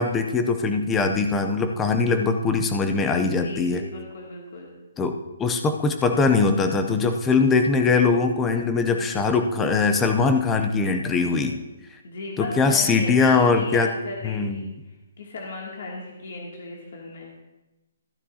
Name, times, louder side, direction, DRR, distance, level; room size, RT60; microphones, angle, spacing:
voice 1, 0.0-3.8 5.0-11.6 12.4-13.9 14.2-14.7, left 4 dB, 10° left, 6 dB, 0.5 m, -21 dB
voice 2, 3.1-4.7 11.2-11.5 12.0-14.7 15.2-17.3, left 3 dB, 50° left, -2 dB, 2.4 m, -36 dB
14.5 x 9.7 x 2.8 m, 1.0 s
hypercardioid pair, 180°, 0 cm